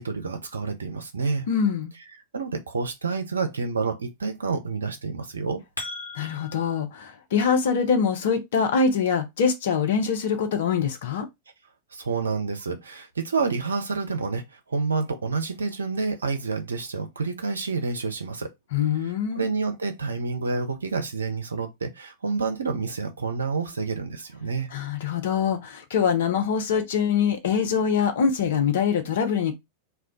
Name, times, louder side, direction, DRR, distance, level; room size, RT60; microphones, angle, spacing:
voice 1, 0.0-1.5 2.3-5.6 11.9-18.5 19.3-24.7, right 4 dB, 75° right, 0.5 m, -28 dB
voice 2, 1.5-1.9 6.1-11.3 18.7-19.4 24.7-29.5, left 6 dB, 60° left, 0.6 m, -24 dB
sound 1, 5.3-6.8, left 2 dB, 90° left, 0.8 m, -37 dB
2.4 x 2.2 x 3.6 m
figure-of-eight pair, 90°, 0 cm